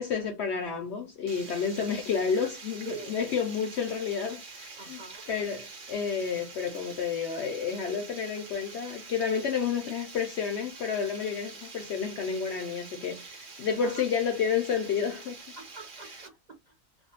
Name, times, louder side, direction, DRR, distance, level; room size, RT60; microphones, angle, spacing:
voice 1, 0.0-5.0 5.3-15.4, left 6 dB, 70° left, 0.6 m, -30 dB
Water, 1.3-16.3, right 4 dB, 45° right, 0.7 m, -46 dB
voice 2, 4.8-5.3 13.8-14.0 15.6-17.1, right 3 dB, 85° right, 0.3 m, -45 dB
2.6 x 2.1 x 2.7 m
omnidirectional pair, 1.6 m